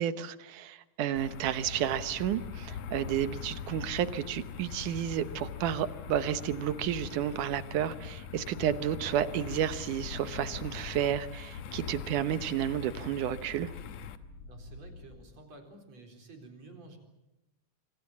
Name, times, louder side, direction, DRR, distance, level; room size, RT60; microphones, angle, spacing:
voice 1, 0.0-13.7, right 10 dB, 75° right, 13 dB, 2.6 m, -31 dB
sound 1, 1.2-14.2, left 7 dB, 65° left, 2.1 m, -42 dB
sound 2, 9.6-15.2, left 1 dB, 45° left, 7.4 m, -52 dB
voice 2, 14.5-17.0, right 2 dB, 55° right, 4 dB, 5.2 m, -51 dB
27.5 x 24.5 x 7.3 m, 0.93 s
omnidirectional pair, 3.7 m